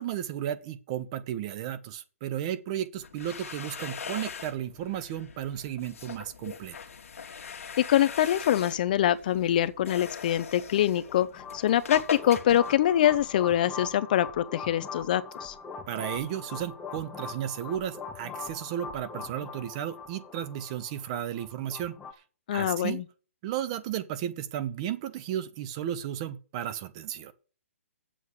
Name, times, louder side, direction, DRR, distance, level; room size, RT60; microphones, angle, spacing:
voice 1, 0.0-6.8 15.9-22.0 22.5-23.0 23.4-27.3, right 11 dB, 25° right, 0.9 m, -34 dB
sound 1, 2.9-13.6, left 6 dB, 75° left, 1.5 m, -41 dB
voice 2, 7.5-15.5 22.5-23.0, left 11 dB, 35° left, 0.6 m, -25 dB
sound 2, 10.7-22.1, left 5 dB, 10° left, 0.9 m, -42 dB
8.3 x 7.6 x 8.1 m
hypercardioid pair, 160°, 8 cm